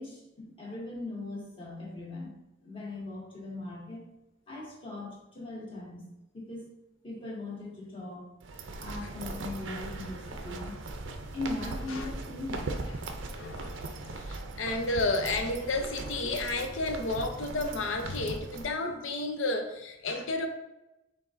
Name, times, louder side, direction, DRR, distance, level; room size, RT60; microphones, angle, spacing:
voice 1, 0.0-2.3 2.6-4.1 4.5-6.0 6.3-6.7 7.0-8.2 8.8-10.8 11.3-12.8, left 2 dB, 25° left, -5 dB, 1.5 m, -39 dB
sound 1, 8.4-18.7, right 2 dB, 65° right, 0.5 m, -39 dB
voice 2, 13.3-20.5, left 2 dB, 70° left, 5 dB, 0.6 m, -32 dB
5.7 x 3.6 x 2.6 m, 0.94 s
head